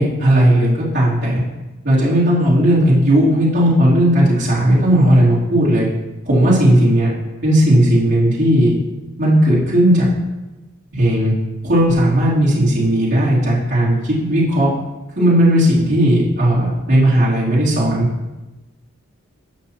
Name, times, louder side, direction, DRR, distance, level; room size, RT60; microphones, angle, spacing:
voice 1, 0.0-1.4 1.8-5.9 6.2-7.1 7.4-8.7 9.2-10.1 10.9-11.3 11.6-14.7 15.2-18.1, right 1 dB, 55° right, -10 dB, 3.2 m, -15 dB
14.5 x 6.6 x 2.9 m, 1.1 s
head